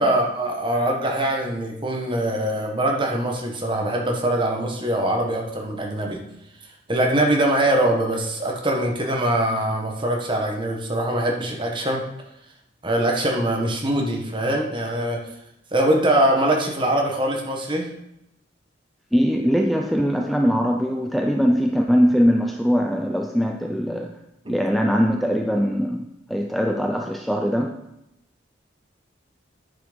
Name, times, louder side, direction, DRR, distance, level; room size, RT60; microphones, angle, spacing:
voice 1, 0.0-6.2 6.9-12.0 12.8-15.2 15.7-17.9 24.4-24.5, right 1 dB, 25° right, 1 dB, 1.4 m, -23 dB
voice 2, 19.1-24.1 24.5-27.8, equal, ahead, 3 dB, 0.4 m, -21 dB
10.0 x 6.0 x 5.2 m, 0.84 s
head